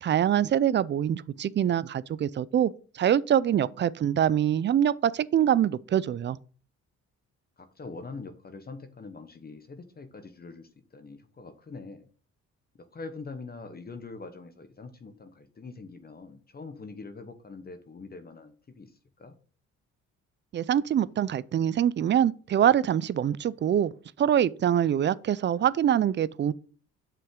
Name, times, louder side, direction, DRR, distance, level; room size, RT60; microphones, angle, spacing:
voice 1, 0.0-6.4 20.5-23.9 24.2-26.5, right 10 dB, 40° right, 0.4 m, -24 dB
voice 2, 7.6-12.1 12.8-19.4, left 4 dB, 30° left, 1.0 m, -44 dB
7.2 x 5.7 x 3.7 m
cardioid pair, 90°, 30 cm